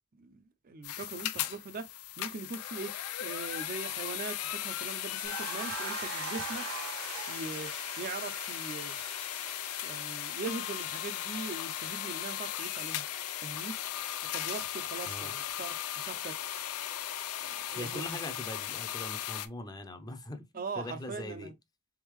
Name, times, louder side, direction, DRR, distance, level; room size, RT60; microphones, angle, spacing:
voice 1, 0.2-1.9 2.2-2.9 3.2-6.7 7.3-9.0 9.8-13.0 13.4-13.8 14.3-16.3 17.4-18.0 20.5-21.5, right 4 dB, 40° right, 0.5 m, -41 dB
sound 1, 0.8-19.5, left 11 dB, 90° left, 0.5 m, -37 dB
sound 2, 5.2-14.0, right 5 dB, 75° right, 1.1 m, -44 dB
voice 2, 17.7-20.5 20.8-21.5, left 1 dB, 20° left, 0.6 m, -41 dB
3.9 x 3.6 x 3.1 m
head